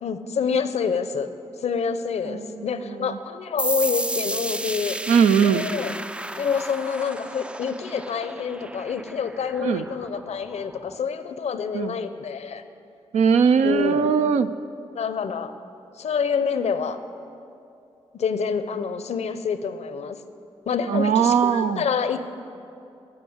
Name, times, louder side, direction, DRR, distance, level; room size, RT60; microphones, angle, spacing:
voice 1, 0.0-1.3 1.6-5.0 5.4-5.9 6.4-12.6 13.6-14.2 14.9-15.5 16.0-17.0 18.2-20.2 20.7-22.3, left 6 dB, 75° left, 11 dB, 0.6 m, -27 dB
voice 2, 2.3-3.2 5.1-5.7 9.6-9.8 11.7-12.0 13.1-14.5 20.9-21.8, right 6 dB, 85° right, 10 dB, 0.5 m, -20 dB
sound 1, 3.6-11.0, right 1 dB, 10° right, 0.3 m, -33 dB
15.5 x 5.4 x 7.9 m, 2.6 s
cardioid pair, 50°, 11 cm